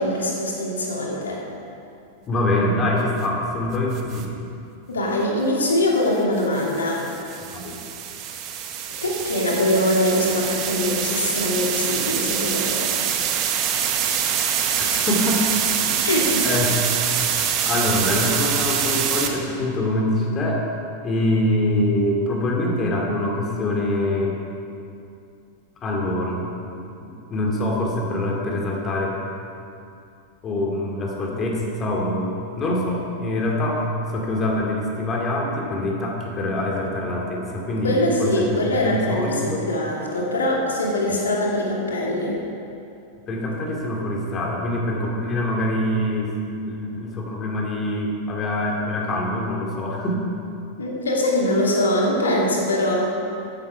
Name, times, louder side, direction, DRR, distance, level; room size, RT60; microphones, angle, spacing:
voice 1, 0.0-1.4 4.9-7.0 9.0-12.8 16.0-16.5 37.8-42.4 50.8-53.0, left 1 dB, 70° left, -2 dB, 2.6 m, -22 dB
voice 2, 2.3-4.4 7.5-7.8 14.8-15.4 15.9-16.1 16.4-16.7 17.6-20.6 21.0-24.3 25.8-26.5 26.8-29.1 30.4-32.3 32.6-33.8 34.1-37.9 38.2-39.6 43.3-50.2, left 1 dB, 25° left, -1 dB, 2.6 m, -24 dB
sound 1, 3.9-4.2 6.4-19.3, right 8 dB, 40° right, 1.2 m, -25 dB
13.5 x 10.5 x 4.7 m, 2.6 s
figure-of-eight pair, 90°, 0 cm